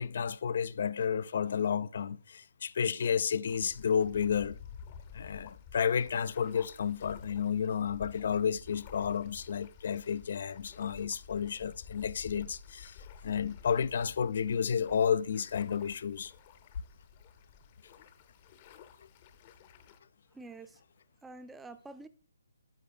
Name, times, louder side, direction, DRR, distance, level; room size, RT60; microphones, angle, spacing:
voice 1, 0.0-4.6 5.1-16.3, left 7 dB, 55° left, 0.4 m, -31 dB
sound 1, 3.4-20.0, left 6 dB, 30° left, 0.8 m, -52 dB
voice 2, 20.3-20.8 21.2-22.1, right 3 dB, 5° right, 0.6 m, -47 dB
13.0 x 4.9 x 2.3 m
hypercardioid pair, 150°, 0 cm